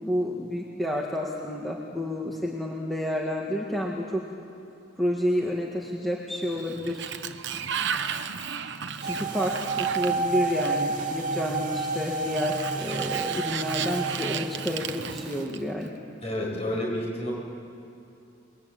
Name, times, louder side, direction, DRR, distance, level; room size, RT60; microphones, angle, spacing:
voice 1, 0.0-4.2 5.0-7.1 9.0-15.9, left 1 dB, ahead, -3 dB, 1.9 m, -30 dB
Sliding door, 6.4-11.0 12.2-15.9, right 7 dB, 65° right, 1.0 m, -34 dB
sound 1, 9.0-15.4, right 4 dB, 40° right, 2.5 m, -30 dB
voice 2, 16.2-17.3, left 1 dB, 35° left, -2 dB, 7.2 m, -29 dB
29.5 x 22.0 x 8.7 m, 2.7 s
head